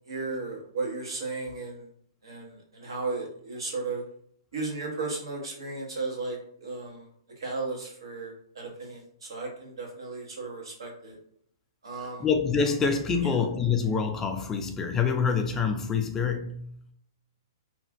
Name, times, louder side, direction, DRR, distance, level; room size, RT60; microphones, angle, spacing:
voice 1, 0.1-1.9 2.2-4.0 4.5-7.1 7.4-11.2 11.8-12.2 13.2-13.4, right 3 dB, 75° right, 1.0 m, -35 dB
voice 2, 12.2-16.8, left 5 dB, 15° left, 0.3 m, -26 dB
2.9 x 2.3 x 2.5 m
hypercardioid pair, 120°, 2 cm